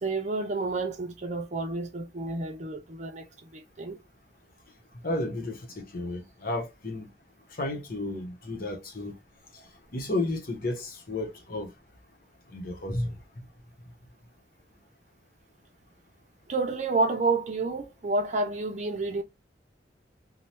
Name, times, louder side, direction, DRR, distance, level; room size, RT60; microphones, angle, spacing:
voice 1, 0.0-4.0 16.5-19.2, right 3 dB, 40° right, 0.6 m, -29 dB
voice 2, 5.0-7.1 7.5-9.2 9.9-11.7 12.5-13.2, left 2 dB, 55° left, 0.9 m, -32 dB
2.8 x 2.2 x 3.2 m
head